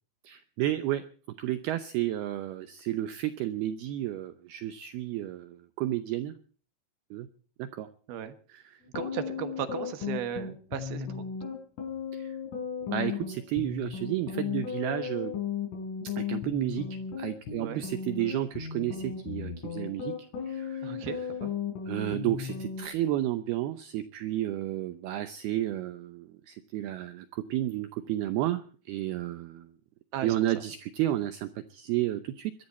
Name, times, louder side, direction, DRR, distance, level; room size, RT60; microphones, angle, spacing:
voice 1, 0.2-1.0 1.4-6.3 7.1-7.3 7.6-7.9 8.5-8.6 12.1-12.4 12.8-15.3 16.2-16.9 17.2-20.1 20.5-21.1 21.9-29.7 30.2-32.5, right 14 dB, 85° right, 10 dB, 2.2 m, -32 dB
sound 1, 8.8-22.9, left 7 dB, 90° left, 6.8 m, -35 dB
voice 2, 8.9-11.2 17.6-17.8 20.8-21.5 30.1-30.4, right 10 dB, 65° right, 9 dB, 2.8 m, -36 dB
22.5 x 13.0 x 4.3 m, 0.42 s
omnidirectional pair, 5.6 m